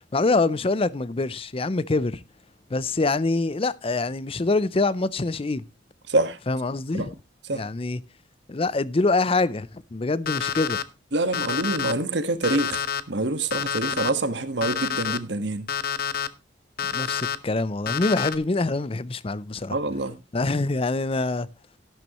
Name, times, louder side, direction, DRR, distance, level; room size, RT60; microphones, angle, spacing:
voice 1, 0.1-2.2 2.7-5.6 6.5-7.1 7.5-8.0 8.5-10.8 16.8-19.8 20.3-21.5, left 3 dB, 30° left, 0.5 m, -25 dB
voice 2, 6.1-6.4 6.9-7.1 7.5-7.6 11.1-15.7 19.7-20.1, right 2 dB, 65° right, 1.5 m, -26 dB
Alarm, 10.3-10.8 11.3-11.9 12.4-13.0 13.5-14.1 14.6-15.2 15.7-16.3 16.8-17.4 17.9-18.4, left 8 dB, 50° left, 0.9 m, -28 dB
12.5 x 11.5 x 3.0 m
head